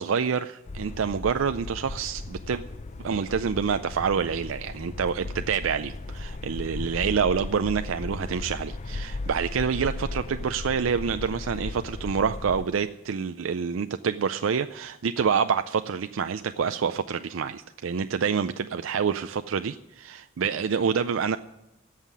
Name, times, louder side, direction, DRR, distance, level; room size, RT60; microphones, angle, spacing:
voice 1, 0.0-2.6 3.0-21.4, right 6 dB, 80° right, 10 dB, 0.4 m, -27 dB
sound 1, 0.7-12.6, left 2 dB, 35° left, 0.5 m, -36 dB
15.5 x 5.8 x 9.7 m, 0.92 s
head